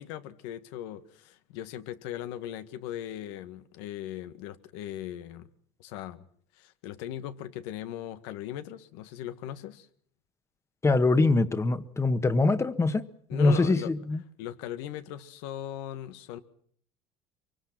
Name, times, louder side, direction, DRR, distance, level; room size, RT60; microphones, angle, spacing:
voice 1, 0.0-5.5 5.8-6.3 6.6-9.9 13.3-13.9 14.4-16.4, left 12 dB, 85° left, 1.8 m, -39 dB
voice 2, 10.8-14.2, left 3 dB, 20° left, 1.6 m, -24 dB
24.0 x 24.0 x 6.0 m
supercardioid pair, 105°, 14 cm